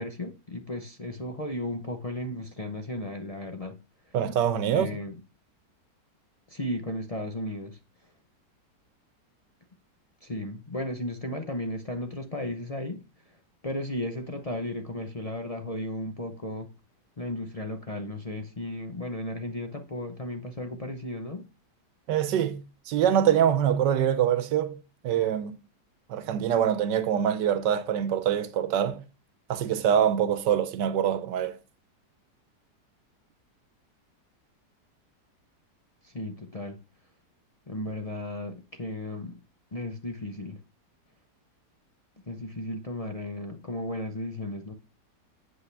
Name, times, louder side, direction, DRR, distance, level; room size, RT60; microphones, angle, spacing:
voice 1, 0.0-3.8 4.1-4.2 4.7-5.2 6.5-7.8 10.2-13.4 13.6-16.7 17.2-21.5 36.0-36.8 37.7-39.4 39.7-40.6 42.3-44.7, left 1 dB, 35° left, 0.5 m, -35 dB
voice 2, 4.1-4.9 22.1-25.6 26.1-29.0 29.5-31.6, right 9 dB, 85° right, 1.5 m, -25 dB
8.3 x 7.5 x 3.3 m
omnidirectional pair, 1.8 m